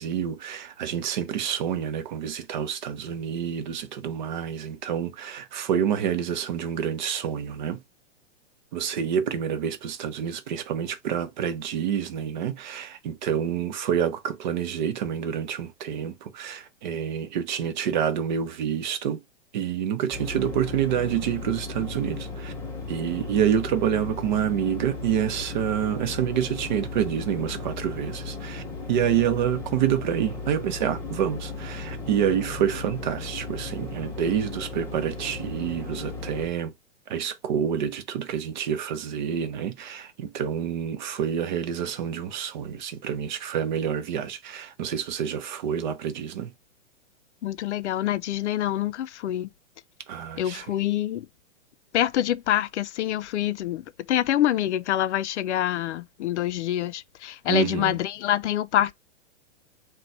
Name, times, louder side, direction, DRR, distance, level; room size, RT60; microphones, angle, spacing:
voice 1, 0.0-7.8 8.7-19.2 19.5-22.5 22.9-36.7 37.1-46.5 50.1-50.6 57.5-58.0, right 9 dB, 40° right, 0.6 m, -28 dB
sound 1, 20.1-36.5, left 3 dB, 5° left, 0.5 m, -36 dB
voice 2, 47.4-49.5 50.4-51.3 51.9-58.9, left 12 dB, 75° left, 0.5 m, -26 dB
3.9 x 2.3 x 4.5 m
hypercardioid pair, 155°, 35 cm